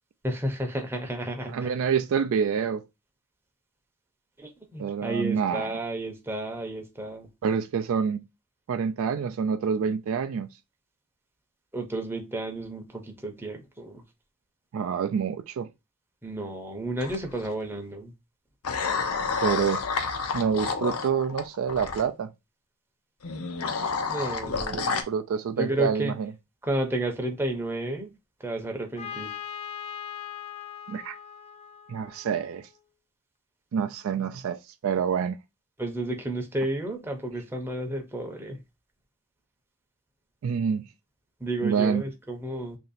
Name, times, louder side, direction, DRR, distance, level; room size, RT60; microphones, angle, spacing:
voice 1, 0.2-1.7 4.4-7.3 11.7-14.0 16.2-18.1 24.1-25.0 25.5-26.1 26.6-28.1 28.4-29.3 35.8-38.6 41.4-42.8, right 1 dB, 10° right, 0.6 m, -32 dB
voice 2, 1.5-2.8 4.8-5.8 7.4-8.2 8.7-10.5 14.7-15.7 19.4-19.8 20.3-22.3 24.7-26.3 30.9-31.1 31.9-32.7 33.7-35.4 40.4-40.8 41.6-42.0, right 7 dB, 65° right, 0.3 m, -27 dB
sound 1, 17.0-17.5 18.6-22.0 23.2-25.0, left 5 dB, 80° left, 0.6 m, -29 dB
Trumpet, 29.0-32.7, left 9 dB, 25° left, 0.4 m, -40 dB
3.0 x 2.7 x 4.0 m
head